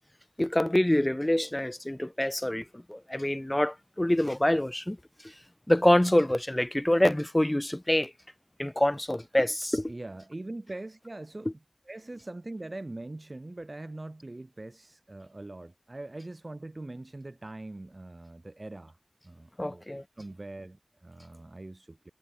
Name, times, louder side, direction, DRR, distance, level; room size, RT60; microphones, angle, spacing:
voice 1, 0.4-5.0 5.7-8.1 8.6-9.9 19.6-20.0, left 1 dB, 25° left, 0.6 m, -26 dB
voice 2, 9.9-11.6 11.8-19.0 19.2-19.8 20.2-22.1, right 2 dB, 60° right, 1.4 m, -42 dB
wide cardioid pair, 50°, 0 cm